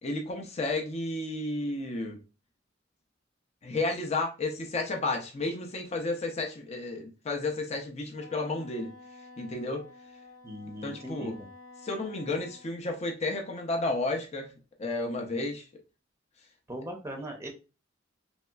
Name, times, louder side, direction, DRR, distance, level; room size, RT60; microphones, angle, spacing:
voice 1, 0.0-2.2 3.6-8.9 9.4-9.8 10.8-11.4 11.8-14.5 14.8-15.7, left 2 dB, 35° left, 3 dB, 0.5 m, -32 dB
Wind instrument woodwind instrument, 8.2-12.7, left 3 dB, 70° left, 0.9 m, -51 dB
voice 2, 10.4-11.3 16.7-17.5, equal, 15° right, 3 dB, 0.6 m, -39 dB
3.1 x 2.7 x 2.2 m, 0.32 s
head